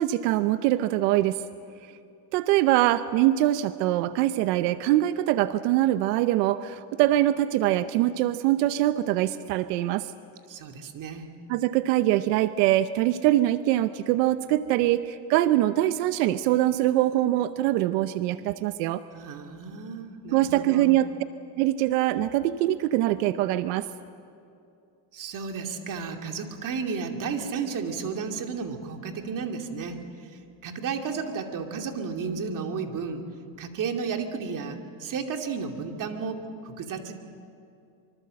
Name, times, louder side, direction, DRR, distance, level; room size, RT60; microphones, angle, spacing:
voice 1, 0.0-1.4 2.3-10.1 11.5-19.0 20.3-21.1 21.6-23.9, right 14 dB, 90° right, 12 dB, 0.9 m, -23 dB
voice 2, 10.5-11.3 19.1-21.0 25.1-33.3 33.6-37.1, right 5 dB, 40° right, 4 dB, 2.6 m, -33 dB
25.5 x 24.5 x 7.7 m, 2.6 s
cardioid pair, 135°, 48 cm